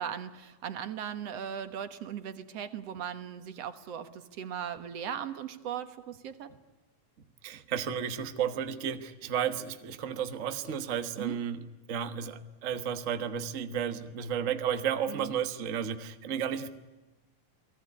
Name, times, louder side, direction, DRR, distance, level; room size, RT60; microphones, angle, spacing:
voice 1, 0.0-6.5 11.2-11.4 15.1-15.3, right 9 dB, 60° right, 10 dB, 2.2 m, -38 dB
voice 2, 7.4-16.7, right 8 dB, 85° right, 9 dB, 0.7 m, -33 dB
29.5 x 19.5 x 9.7 m, 1.1 s
omnidirectional pair, 3.6 m